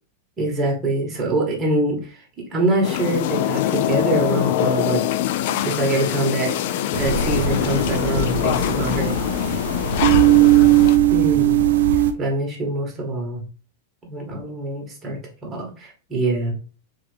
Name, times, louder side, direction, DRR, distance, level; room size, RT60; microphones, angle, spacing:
voice 1, 0.4-2.3 2.5-5.0 5.6-6.6 7.0-9.2 11.1-11.6 12.2-13.4 14.0-16.5, right 2 dB, 20° right, -1 dB, 1.9 m, -24 dB
sound 1, 2.8-11.0, left 12 dB, 60° left, 0.4 m, -24 dB
sound 2, 6.9-12.1, right 12 dB, 80° right, 0.6 m, -18 dB
3.7 x 3.4 x 3.3 m, 0.38 s
hypercardioid pair, 125°, 0 cm